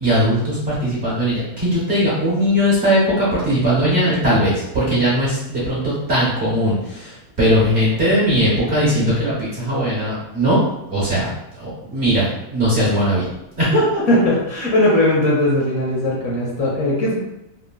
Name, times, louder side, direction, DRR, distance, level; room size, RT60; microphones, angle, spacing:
voice 1, 0.0-10.6 10.9-11.3 11.6-13.3 13.6-14.0, equal, 50° right, -8 dB, 0.9 m, -19 dB
voice 2, 14.1-17.2, left 1 dB, 60° left, -5 dB, 1.0 m, -18 dB
3.7 x 2.1 x 2.2 m, 0.88 s
omnidirectional pair, 1.9 m